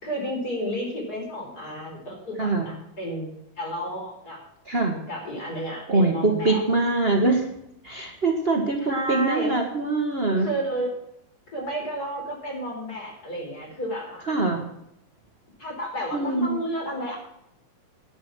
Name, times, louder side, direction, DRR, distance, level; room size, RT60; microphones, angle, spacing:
voice 1, 0.0-4.4 5.1-6.6 8.8-9.6 10.4-10.9 11.5-14.4 15.6-17.2, equal, 25° left, 0 dB, 4.6 m, -32 dB
voice 2, 2.4-2.7 4.6-5.0 5.9-7.4 7.8-10.5 14.3-14.6 16.1-16.6, right 2 dB, 90° right, 2 dB, 0.5 m, -23 dB
11.0 x 10.0 x 6.1 m, 0.78 s
omnidirectional pair, 3.8 m